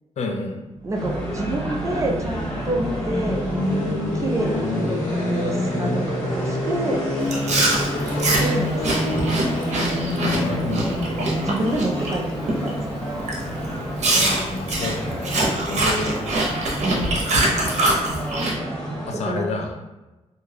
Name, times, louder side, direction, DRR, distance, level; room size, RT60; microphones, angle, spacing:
voice 1, 0.2-0.7 10.3-11.0 14.1-16.2 17.8-18.3 19.1-19.7, left 2 dB, 60° left, 3 dB, 0.5 m, -30 dB
sound 1, 0.8-14.7, left 1 dB, 80° left, 1.1 m, -28 dB
voice 2, 0.8-3.4 4.1-7.0 8.4-9.1 11.4-12.9 16.8-17.1 19.1-19.5, right 1 dB, 25° right, 0 dB, 0.5 m, -27 dB
sound 2, 0.9-19.1, equal, 10° left, 0.8 m, -31 dB
Chewing mastication, 7.3-12.1 12.5-12.8 13.3-13.4 14.0-18.5, right 2 dB, 60° right, 0.7 m, -23 dB
2.6 x 2.2 x 3.3 m, 1.1 s
wide cardioid pair, 120°, 13 cm